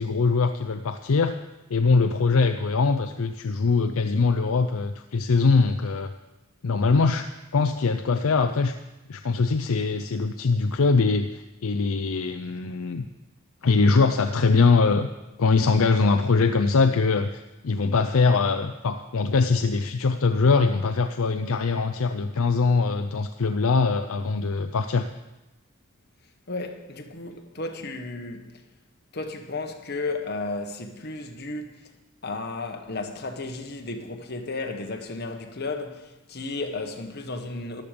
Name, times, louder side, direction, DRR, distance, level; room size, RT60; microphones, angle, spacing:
voice 1, 0.0-1.4 1.7-6.1 6.6-8.7 9.1-13.0 13.6-15.1 15.4-25.1, left 4 dB, 70° left, 0.5 m, -22 dB
voice 2, 26.5-28.5 29.1-31.7 32.2-37.8, left 3 dB, 45° left, 1.4 m, -33 dB
14.0 x 12.0 x 5.1 m
head